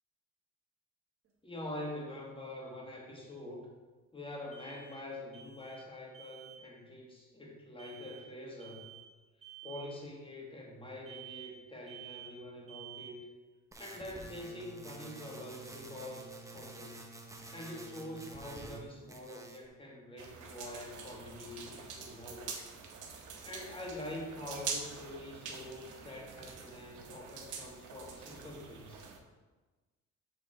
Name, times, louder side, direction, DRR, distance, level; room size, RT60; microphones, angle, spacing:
sound 1, 1.3-1.4 4.5-5.1 5.3-5.9 6.1-6.6 7.8-8.3 8.6-9.1 9.4-9.9 11.1-11.6 11.9-12.4 12.7-13.2, right 11 dB, 45° right, 1.5 m, -51 dB
voice 1, 1.4-3.7 4.1-8.9 9.6-13.2 13.8-17.0 17.5-22.5 23.4-29.1, left 1 dB, 15° left, -2 dB, 1.6 m, -45 dB
sound 2, 13.7-18.8 19.1-19.7, right 2 dB, 10° right, 0.8 m, -49 dB
sound 3, 20.2-29.2, right 5 dB, 85° right, 0.9 m, -45 dB
6.6 x 3.5 x 4.9 m, 1.3 s
cardioid pair, 90°, 30 cm